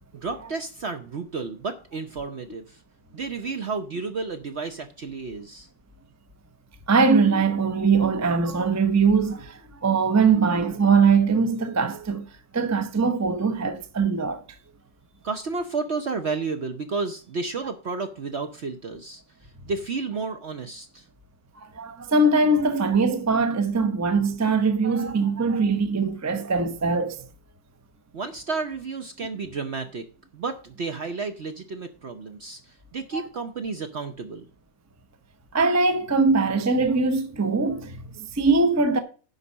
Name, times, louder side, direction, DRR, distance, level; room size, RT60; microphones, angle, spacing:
voice 1, 0.2-2.8 3.1-5.7 15.2-19.2 19.7-21.0 28.1-30.0 30.3-32.6 32.9-34.5, right 4 dB, 55° right, 0.7 m, -31 dB
voice 2, 6.9-12.3 12.5-14.4 21.6-27.2 33.1-33.3 35.5-39.0, right 4 dB, 20° right, 0.4 m, -22 dB
10.5 x 4.1 x 7.2 m
omnidirectional pair, 1.9 m